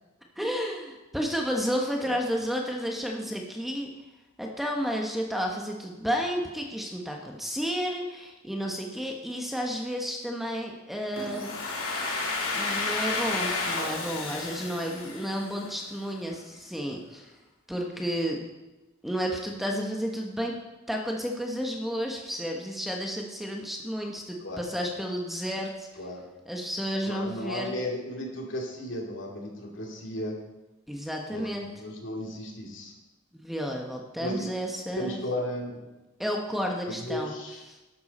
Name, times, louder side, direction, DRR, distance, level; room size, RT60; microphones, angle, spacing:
voice 1, 0.4-3.9 4.4-12.1 12.5-17.3 17.7-18.4 19.0-20.5 20.9-25.9 26.5-27.7 30.9-31.6 33.3-35.2 36.2-37.3, equal, ahead, 1 dB, 1.1 m, -32 dB
Domestic sounds home sounds, 11.2-15.9, left 3 dB, 80° left, 2.6 m, -31 dB
voice 2, 27.0-30.4 31.3-32.9 34.2-34.5 34.9-35.8 36.9-37.6, left 1 dB, 60° left, 0 dB, 2.7 m, -35 dB
12.5 x 11.5 x 4.3 m, 1.1 s
head